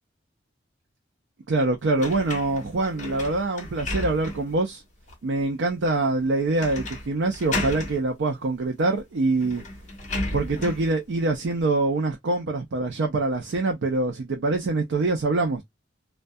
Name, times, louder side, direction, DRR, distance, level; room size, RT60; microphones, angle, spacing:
voice 1, 1.5-4.8 5.2-9.6 10.3-15.6, right 2 dB, 70° right, 0.4 m, -24 dB
sound 1, 2.0-4.6 5.1-5.2 6.6-7.1 7.3-8.0 9.0-9.1 9.4-10.9, left 2 dB, 40° left, 0.8 m, -33 dB
2.2 x 2.2 x 2.5 m
head